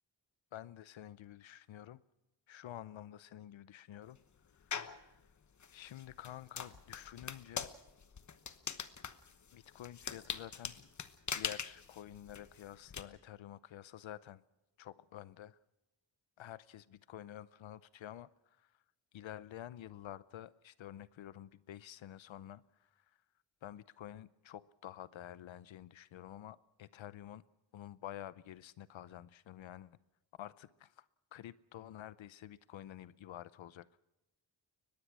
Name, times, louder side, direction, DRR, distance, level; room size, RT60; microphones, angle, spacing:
voice 1, 0.5-2.0 2.5-4.2 4.5-5.2 5.7-7.7 9.5-10.8 11.3-14.4 14.8-15.6 16.4-18.8 19.1-23.2 23.6-27.4 27.7-30.0 30.4-33.9, left 12 dB, 80° left, 0.7 m, -50 dB
sound 1, 4.7-5.0 5.6-13.0, left 6 dB, 40° left, 1.1 m, -42 dB
23.0 x 20.5 x 6.2 m
wide cardioid pair, 170°, 45 cm